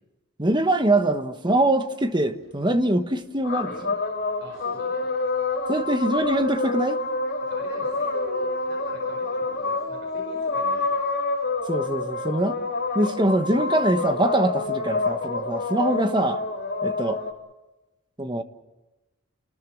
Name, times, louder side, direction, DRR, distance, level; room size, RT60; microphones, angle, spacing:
voice 1, 0.4-4.0 5.7-7.0 11.7-12.6 12.9-16.4 16.8-17.2 18.2-18.4, right 1 dB, 20° right, 1.3 m, -23 dB
sound 1, 3.4-17.3, left 3 dB, 50° left, 4.1 m, -27 dB
voice 2, 4.4-5.0 7.5-11.0, right 1 dB, 60° right, 5.0 m, -44 dB
30.0 x 20.0 x 7.3 m
head